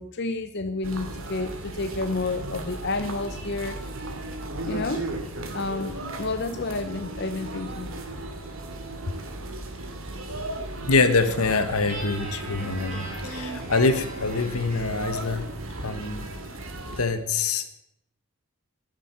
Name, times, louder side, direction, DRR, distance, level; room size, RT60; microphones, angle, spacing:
voice 1, 0.0-3.8 4.7-5.1 5.5-7.9, left 3 dB, 50° left, 9 dB, 0.7 m, -30 dB
sound 1, 0.8-17.0, right 2 dB, 65° right, 2.2 m, -36 dB
voice 2, 10.8-15.5 15.8-16.2 17.0-17.7, left 3 dB, 85° left, 10 dB, 1.3 m, -25 dB
Guitar, 11.9-15.1, equal, 35° right, 4.9 m, -39 dB
10.5 x 10.5 x 7.5 m, 0.75 s
head